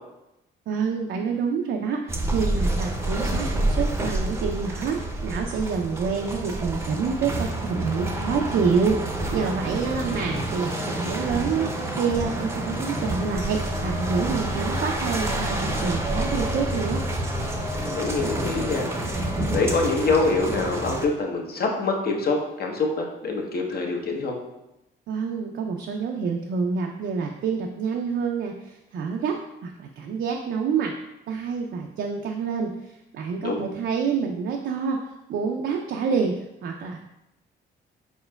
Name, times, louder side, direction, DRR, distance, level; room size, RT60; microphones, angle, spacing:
voice 1, 0.7-17.0 25.1-30.9 31.3-36.3 36.6-37.0, right 5 dB, 65° right, 2 dB, 0.4 m, -27 dB
sound 1, 2.1-21.1, right 1 dB, 15° right, 0.6 m, -28 dB
voice 2, 17.7-18.9 19.5-24.3 33.4-33.6, left 3 dB, 50° left, 1 dB, 0.9 m, -25 dB
4.4 x 4.3 x 2.2 m, 0.92 s
cardioid pair, 90°, 20 cm